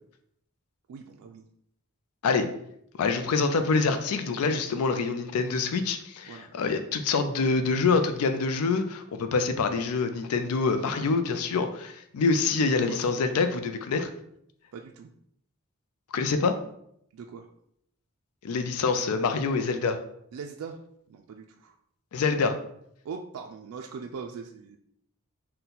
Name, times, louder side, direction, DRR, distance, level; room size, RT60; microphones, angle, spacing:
voice 1, 0.9-1.4 6.3-6.5 12.8-13.1 14.7-15.1 17.1-17.5 20.3-20.8 21.1-21.7 23.0-24.8, right 5 dB, 85° right, 4 dB, 0.3 m, -40 dB
voice 2, 3.0-14.1 16.1-16.6 18.4-20.0 22.1-22.6, left 4 dB, 90° left, 8 dB, 0.4 m, -26 dB
3.8 x 2.2 x 4.1 m, 0.72 s
head